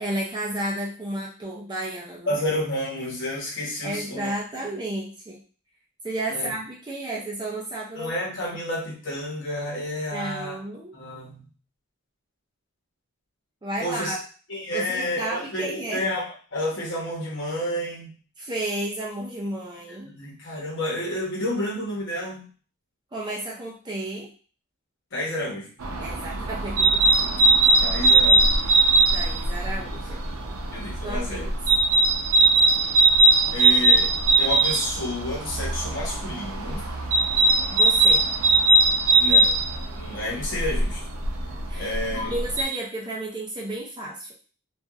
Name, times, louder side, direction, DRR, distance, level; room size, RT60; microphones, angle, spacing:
voice 1, 0.0-2.4 3.8-5.4 6.0-8.1 10.1-10.9 13.6-14.2 14.7-16.0 18.4-20.1 23.1-24.3 26.0-27.3 28.6-28.7 29.1-30.2 31.0-31.5 37.7-38.3 41.7-44.3, right 1 dB, 20° right, -3 dB, 0.4 m, -32 dB
voice 2, 2.3-4.3 6.3-6.5 8.0-10.6 10.9-11.5 13.8-14.2 14.5-18.1 20.1-22.5 25.1-25.7 27.8-28.5 30.7-31.5 33.5-34.1 34.4-36.9 39.2-41.0 41.8-42.3, left 1 dB, 55° left, -3 dB, 1.0 m, -30 dB
sound 1, 25.8-42.6, right 2 dB, 70° right, 0.5 m, -20 dB
2.8 x 2.4 x 2.4 m, 0.39 s
head